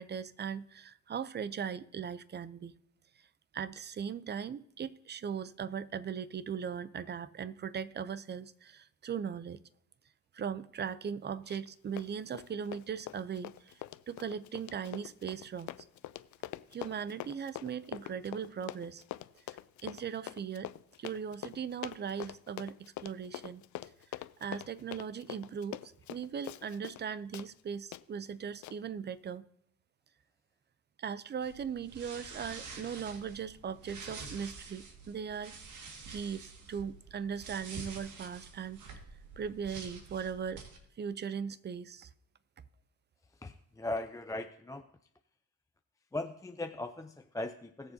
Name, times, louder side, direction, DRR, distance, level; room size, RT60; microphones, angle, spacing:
voice 1, 0.0-2.8 3.5-9.6 10.3-13.7 14.1-15.8 16.7-19.0 19.8-20.7 21.0-23.6 24.4-25.8 26.1-29.4 31.0-35.6 36.1-38.8 39.4-40.6 41.0-42.1, right 7 dB, 35° right, 0.6 m, -39 dB
Run, 11.5-11.7 12.0-27.0 27.3-27.5 27.9-28.0 28.6-28.8, left 15 dB, 75° left, 0.5 m, -44 dB
sound 1, 31.4-40.8, right 4 dB, 75° right, 2.0 m, -48 dB
voice 2, 43.4-44.9 46.1-47.9, left 2 dB, 10° left, 0.5 m, -39 dB
20.0 x 7.0 x 2.8 m
cardioid pair, 90°, 30 cm